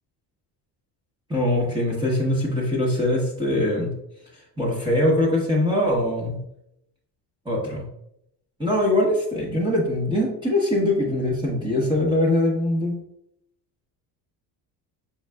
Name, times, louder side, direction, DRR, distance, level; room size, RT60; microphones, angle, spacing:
voice 1, 1.3-3.9 4.6-6.4 7.4-7.8 8.6-13.0, left 1 dB, 10° right, -4 dB, 1.0 m, -22 dB
6.0 x 3.9 x 2.3 m, 0.77 s
cardioid pair, 150°, 41 cm